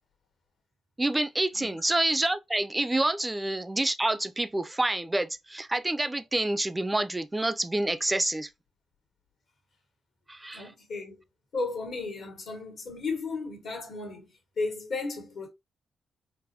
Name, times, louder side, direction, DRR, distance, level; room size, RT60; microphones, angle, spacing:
voice 1, 1.0-8.5 10.3-10.7, right 2 dB, 20° right, 0.4 m, -28 dB
voice 2, 10.5-11.2 11.5-14.3 14.6-15.5, left 3 dB, 70° left, 1.4 m, -34 dB
3.9 x 2.2 x 2.6 m
supercardioid pair, 50°, 0 cm